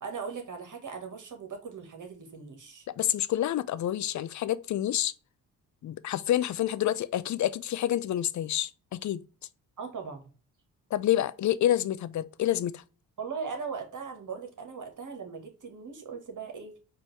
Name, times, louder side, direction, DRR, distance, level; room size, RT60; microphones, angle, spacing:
voice 1, 0.0-2.8 9.8-10.2 13.2-16.7, right 5 dB, 45° right, 1.5 m, -39 dB
voice 2, 3.0-5.1 5.8-9.2 10.9-12.8, left 12 dB, 45° left, 0.5 m, -28 dB
4.6 x 2.6 x 3.2 m
hypercardioid pair, 45°, 43 cm